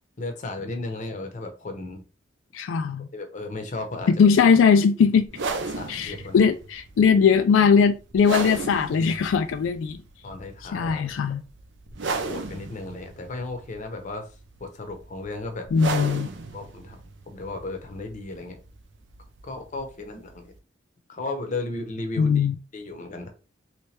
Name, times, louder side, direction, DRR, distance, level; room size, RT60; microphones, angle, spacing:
voice 1, 0.2-2.0 3.1-4.1 5.8-6.4 10.2-11.4 12.3-14.3 14.6-15.7 16.5-18.6 19.4-20.5 21.1-22.5 22.7-23.3, left 2 dB, 40° left, 0.7 m, -35 dB
voice 2, 2.5-3.1 4.1-5.3 5.9-10.0 10.6-11.4 15.7-16.3 22.2-22.6, left 6 dB, 85° left, 0.3 m, -20 dB
sound 1, 5.3-20.6, right 3 dB, 65° right, 0.6 m, -36 dB
3.2 x 2.9 x 3.2 m
head